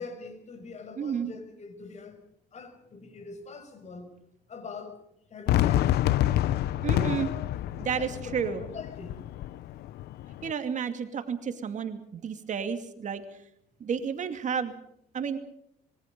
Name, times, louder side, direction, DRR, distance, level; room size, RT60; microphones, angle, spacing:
voice 1, 0.0-2.2 2.5-4.1 4.5-5.0 5.3-6.0 7.9-9.2, left 4 dB, 40° left, 5.9 m, -43 dB
voice 2, 1.0-1.3 6.8-7.3 7.8-8.6 10.4-13.2 13.8-14.7 15.1-15.4, right 7 dB, 45° right, 2.5 m, -31 dB
Fireworks, 5.5-10.5, left 13 dB, 75° left, 0.8 m, -28 dB
26.0 x 22.5 x 5.3 m
cardioid pair, 110°, 17 cm